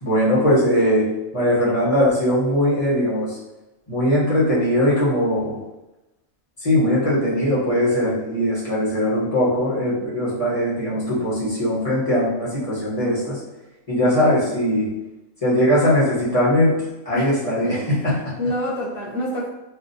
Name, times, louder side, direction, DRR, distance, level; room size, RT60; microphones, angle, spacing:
voice 1, 0.0-3.4 3.9-5.6 6.6-13.4 13.9-14.9 15.4-16.8 17.0-18.3, equal, 25° left, -9 dB, 1.0 m, -20 dB
voice 2, 17.6-19.5, equal, 15° right, -10 dB, 0.4 m, -27 dB
3.7 x 2.3 x 2.6 m, 0.98 s
omnidirectional pair, 1.6 m